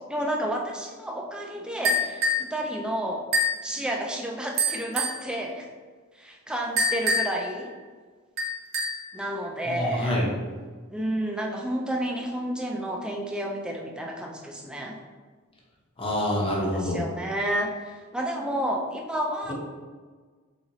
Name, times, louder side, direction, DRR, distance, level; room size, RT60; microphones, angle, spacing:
voice 1, 0.1-3.2 3.6-5.7 6.2-7.7 9.1-10.2 10.9-15.0 16.5-19.5, right 1 dB, 5° right, 0 dB, 0.4 m, -31 dB
sound 1, 1.8-2.5 3.3-3.6 4.6-5.2 6.8-7.5 8.4-9.1, left 1 dB, 45° right, 0.9 m, -25 dB
voice 2, 9.7-10.3 16.0-17.0 19.5-19.6, left 1 dB, 25° left, -4 dB, 0.9 m, -26 dB
4.0 x 3.8 x 3.0 m, 1.5 s
head